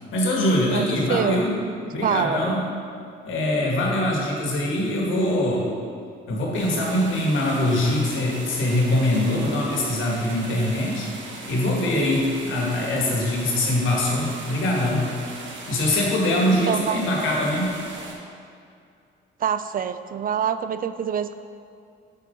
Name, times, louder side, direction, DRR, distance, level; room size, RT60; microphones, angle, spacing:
voice 1, 0.1-1.5 1.9-2.6 3.3-5.7 6.3-15.1 15.4-17.7, left 1 dB, 80° left, -2 dB, 1.9 m, -23 dB
voice 2, 0.7-1.4 2.0-2.4 16.5-17.0 19.4-21.3, right 8 dB, 45° right, 11 dB, 0.4 m, -25 dB
sound 1, 6.5-18.1, right 3 dB, 70° right, 1.3 m, -39 dB
7.8 x 5.3 x 5.3 m, 2.3 s
cardioid pair, 90°, 20 cm